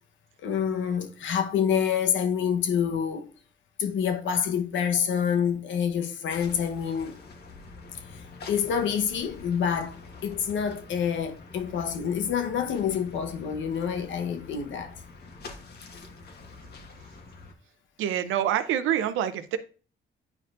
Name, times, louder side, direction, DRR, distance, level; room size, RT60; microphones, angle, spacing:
voice 1, 0.4-3.3 3.8-7.2 8.5-10.0 10.2-14.9, left 8 dB, 75° left, 1.0 m, -27 dB
sound 1, 6.3-17.5, left 3 dB, 55° left, 1.3 m, -46 dB
voice 2, 18.0-19.6, right 10 dB, 85° right, 0.7 m, -26 dB
9.8 x 4.5 x 2.5 m
cardioid pair, 90°, 20 cm